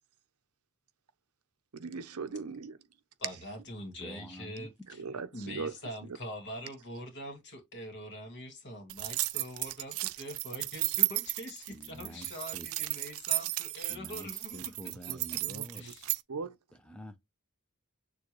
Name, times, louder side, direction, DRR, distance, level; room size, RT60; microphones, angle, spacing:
voice 1, 1.7-2.8 5.0-5.7 15.5-15.6 16.3-16.5, right 4 dB, 90° right, 0.7 m, -38 dB
voice 2, 3.2-5.0 5.3-14.6 15.0-15.4 15.7-16.2, equal, 50° left, 1.8 m, -44 dB
voice 3, 4.0-4.7 11.7-12.7 13.9-15.8 16.7-17.2, equal, 5° left, 0.6 m, -47 dB
sound 1, 8.9-16.2, right 21 dB, 65° right, 0.3 m, -33 dB
6.7 x 2.3 x 3.1 m
head